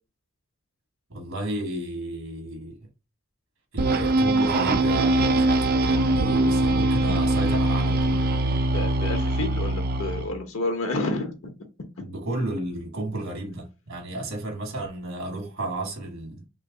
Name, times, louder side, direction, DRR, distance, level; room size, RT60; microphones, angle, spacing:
voice 1, 1.1-2.8 3.7-8.3 9.7-9.8 12.0-16.5, right 1 dB, 65° right, 1.3 m, -32 dB
sound 1, 3.8-10.3, right 2 dB, 45° right, 0.4 m, -22 dB
voice 2, 8.7-11.3, left 2 dB, 75° left, 0.9 m, -29 dB
3.1 x 3.1 x 3.8 m
head